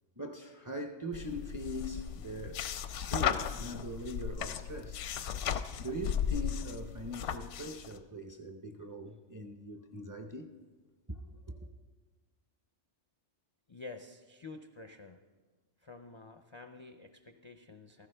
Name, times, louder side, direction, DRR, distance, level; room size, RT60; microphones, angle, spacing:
voice 1, 0.2-2.7 3.0-5.1 5.8-10.5 11.1-11.7, equal, 25° right, 0.4 m, -41 dB
sound 1, 1.1-7.9, left 8 dB, 80° left, 0.9 m, -36 dB
voice 2, 13.7-15.2 15.8-18.1, left 3 dB, 50° left, 0.3 m, -49 dB
15.0 x 14.5 x 3.3 m
omnidirectional pair, 1.2 m